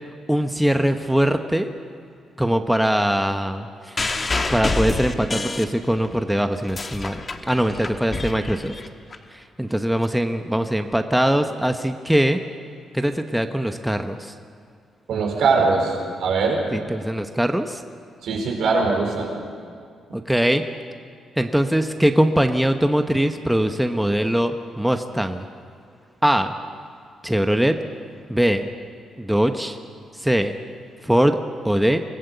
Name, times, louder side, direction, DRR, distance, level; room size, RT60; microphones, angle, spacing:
voice 1, 0.3-1.7 2.4-8.7 9.3-12.4 12.9-14.3 16.7-17.8 20.1-20.6 21.4-25.4 26.2-26.5 27.2-27.8 28.3-28.7 29.2-29.8 30.2-30.6 31.0-31.4 31.6-32.0, equal, 5° right, 7 dB, 0.9 m, -21 dB
sound 1, 4.0-6.2 6.5-9.2 10.0-10.1, left 3 dB, 30° left, 1.3 m, -27 dB
voice 2, 15.1-16.6 18.2-19.3, right 4 dB, 80° right, 1 dB, 4.5 m, -21 dB
23.5 x 15.0 x 8.2 m, 2.3 s
cardioid pair, 115°, 0 cm